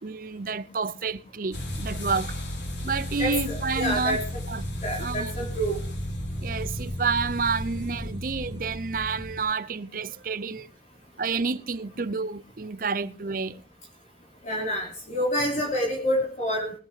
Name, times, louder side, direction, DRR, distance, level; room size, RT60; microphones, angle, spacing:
voice 1, 0.0-2.4 2.8-4.2 4.5-4.7 5.0-5.5 6.4-10.7 11.2-13.6, right 4 dB, 50° right, 0.7 m, -29 dB
sound 1, 1.5-9.4, equal, 75° left, 3.3 m, -34 dB
voice 2, 3.2-4.2 4.8-5.8 14.4-16.7, equal, 40° left, 3.2 m, -27 dB
20.5 x 8.4 x 4.9 m
head